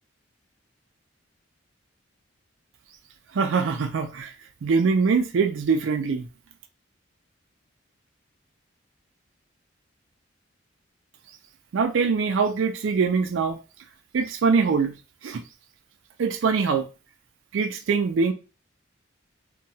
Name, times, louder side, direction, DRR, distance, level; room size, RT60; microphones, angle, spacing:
voice 1, 3.3-4.3 4.6-6.3 11.7-13.6 14.1-14.9 15.2-15.4 16.2-16.9 17.5-18.3, right 5 dB, 80° right, 0.4 m, -23 dB
2.8 x 2.2 x 2.7 m
head